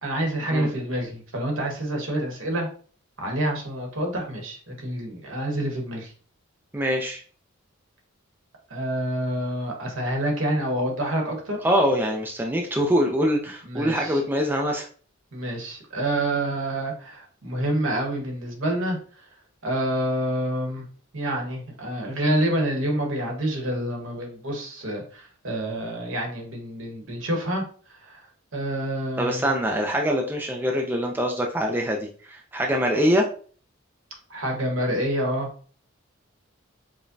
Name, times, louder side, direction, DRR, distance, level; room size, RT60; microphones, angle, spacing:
voice 1, 0.0-2.7 3.2-6.1 8.7-11.6 13.6-14.2 15.3-19.0 19.6-20.8 21.1-27.6 27.9-28.2 28.5-29.5 34.3-35.5, right 1 dB, 70° right, 1 dB, 1.1 m, -27 dB
voice 2, 6.7-7.2 11.6-14.9 29.2-33.3, equal, 10° right, 0 dB, 0.4 m, -24 dB
4.9 x 2.1 x 2.6 m, 0.42 s
head